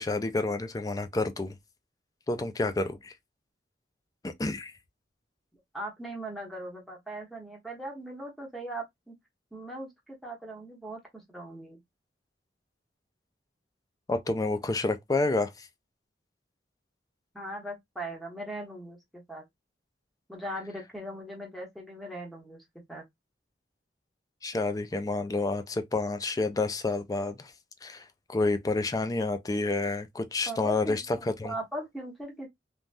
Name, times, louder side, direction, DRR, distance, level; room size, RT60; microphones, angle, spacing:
voice 1, 0.0-1.6 2.3-3.1 4.2-4.7 14.1-15.7 24.4-27.5 27.8-31.5, left 3 dB, 20° left, 0.3 m, -29 dB
voice 2, 5.7-9.1 9.5-11.8 17.3-19.4 20.3-22.6 22.9-23.1 30.5-31.0 31.4-32.5, right 1 dB, ahead, 0.9 m, -39 dB
3.4 x 2.1 x 2.5 m
head